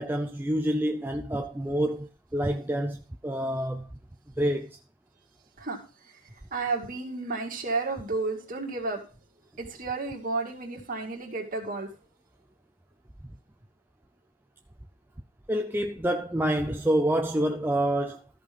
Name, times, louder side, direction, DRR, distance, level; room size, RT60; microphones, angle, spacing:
voice 1, 0.0-3.9 4.4-4.8 15.5-18.2, right 1 dB, 10° right, 0.4 m, -27 dB
voice 2, 6.5-9.0 9.6-11.9, right 3 dB, 40° right, 2.2 m, -32 dB
14.0 x 5.3 x 5.3 m
head